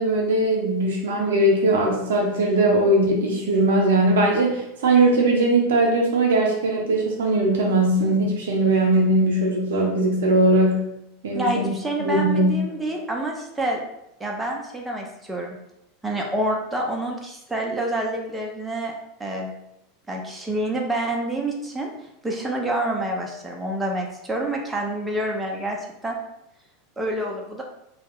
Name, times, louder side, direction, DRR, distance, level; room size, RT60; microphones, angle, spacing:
voice 1, 0.0-10.9 11.2-11.7 12.0-12.5, right 2 dB, 75° right, 0 dB, 0.6 m, -20 dB
voice 2, 11.3-13.8 14.2-15.6 16.0-18.9 19.2-19.5 20.1-21.9 22.2-26.2 27.0-27.6, right 1 dB, 10° right, 0 dB, 0.5 m, -27 dB
2.2 x 2.0 x 3.3 m, 0.83 s
hypercardioid pair, 90°, 0 cm